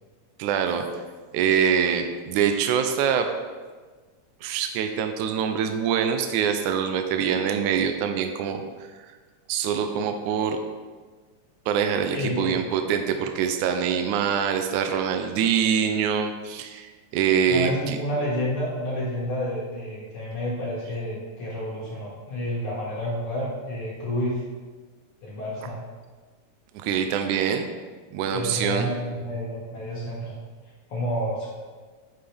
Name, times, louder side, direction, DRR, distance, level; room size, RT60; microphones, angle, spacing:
voice 1, 0.4-0.8 1.3-3.3 4.4-8.6 9.5-10.6 11.7-18.0 26.7-27.7 28.1-28.9, right 7 dB, 80° right, 6 dB, 1.9 m, -24 dB
voice 2, 12.1-12.5 17.5-24.4 25.2-25.8 28.3-30.4 30.9-31.5, equal, 50° left, -6 dB, 2.1 m, -29 dB
9.9 x 5.6 x 3.4 m, 1.4 s
omnidirectional pair, 3.7 m